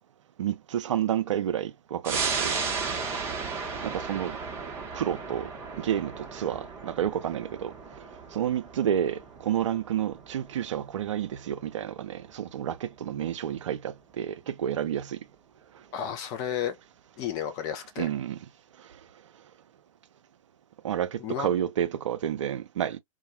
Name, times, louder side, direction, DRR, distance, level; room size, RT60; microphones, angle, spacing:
voice 1, 0.4-2.6 3.8-4.4 4.9-5.5 5.8-7.7 8.3-15.2 18.0-18.4 18.9-19.0 20.8-23.0, right 10 dB, 55° right, 0.5 m, -30 dB
sound 1, 2.0-13.0 13.4-13.5, right 5 dB, 15° right, 0.7 m, -35 dB
voice 2, 15.9-16.8 17.2-18.1 21.2-21.5, left 9 dB, 20° left, 0.3 m, -32 dB
2.2 x 2.1 x 2.7 m
figure-of-eight pair, 120°, 19 cm